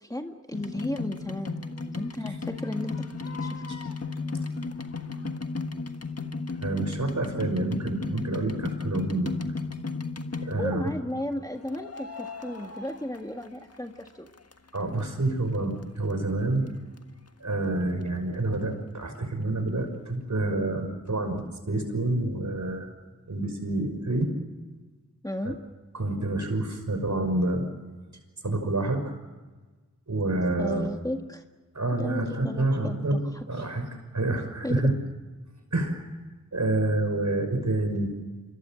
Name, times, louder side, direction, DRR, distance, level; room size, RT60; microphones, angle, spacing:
voice 1, 0.0-3.6 10.6-14.3 25.2-25.6 30.6-31.4 32.0-33.7 34.6-34.8, left 1 dB, 10° left, 5 dB, 1.8 m, -34 dB
sound 1, 0.5-10.9 11.7-13.8 14.1-15.0 15.5-15.6 15.8-15.9 16.1-16.2 16.7-16.8 17.0-17.1, left 4 dB, 45° left, 1.6 m, -35 dB
voice 2, 6.6-9.3 10.4-10.9 14.7-16.7 17.4-22.9 23.3-24.3 25.4-25.6 25.9-27.7 28.4-29.0 30.1-30.9 31.7-33.2 33.5-34.9 35.7-36.0 36.5-38.1, right 2 dB, 55° right, 6 dB, 5.7 m, -28 dB
26.5 x 23.0 x 7.6 m, 1.3 s
cardioid pair, 45°, 33 cm